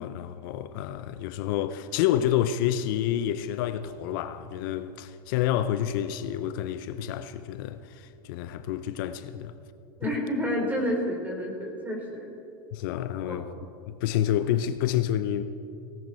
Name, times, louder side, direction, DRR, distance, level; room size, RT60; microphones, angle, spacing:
voice 1, 0.0-9.6 12.7-13.5 13.9-15.4, left 11 dB, 65° left, 0.7 m, -28 dB
voice 2, 10.0-12.3 13.3-13.5, equal, 15° right, 4.4 m, -29 dB
18.0 x 17.0 x 4.5 m
supercardioid pair, 115°, 12 cm